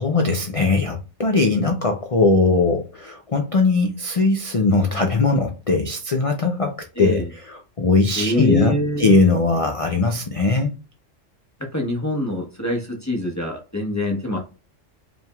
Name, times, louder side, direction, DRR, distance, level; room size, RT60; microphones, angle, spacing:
voice 1, 0.0-10.7, left 3 dB, 40° left, 0.5 m, -20 dB
voice 2, 7.0-7.3 8.2-9.2 11.7-14.4, left 1 dB, 15° left, 1.0 m, -25 dB
5.1 x 3.4 x 2.3 m
omnidirectional pair, 1.3 m